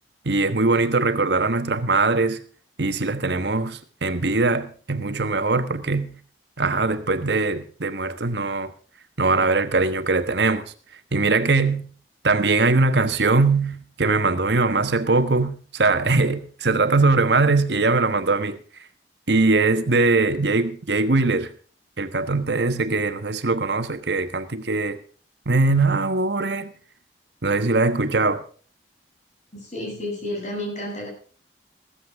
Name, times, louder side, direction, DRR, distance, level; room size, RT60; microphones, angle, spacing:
voice 1, 0.2-2.4 2.8-6.1 6.6-8.7 9.2-10.6 11.1-11.9 12.2-18.6 19.3-21.5 22.0-25.0 25.5-26.7 27.4-28.4, right 3 dB, 75° right, 1.3 m, -21 dB
voice 2, 29.6-31.1, left 1 dB, 40° left, 7.7 m, -31 dB
15.5 x 14.0 x 3.5 m
head